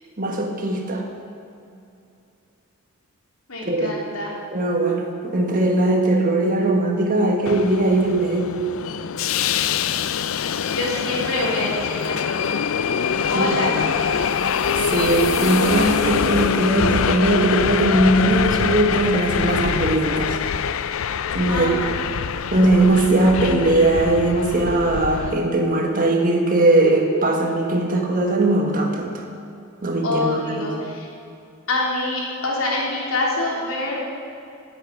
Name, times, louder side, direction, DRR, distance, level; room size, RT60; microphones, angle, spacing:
voice 1, 0.2-1.1 3.6-4.0 4.5-8.6 13.3-13.6 14.8-20.4 21.3-21.8 22.5-29.2 29.8-30.9, right 2 dB, 40° right, 2 dB, 1.6 m, -20 dB
voice 2, 3.5-4.3 10.4-12.6 13.3-14.4 16.0-16.1 21.5-22.0 30.0-31.1 31.7-34.1, left 2 dB, 90° left, -3 dB, 3.3 m, -26 dB
Subway metro underground, 7.4-25.3, left 7 dB, 75° left, 0.5 m, -24 dB
sound 1, 14.1-17.3, left 2 dB, 20° left, 3.2 m, -38 dB
11.5 x 7.9 x 9.5 m, 2.7 s
head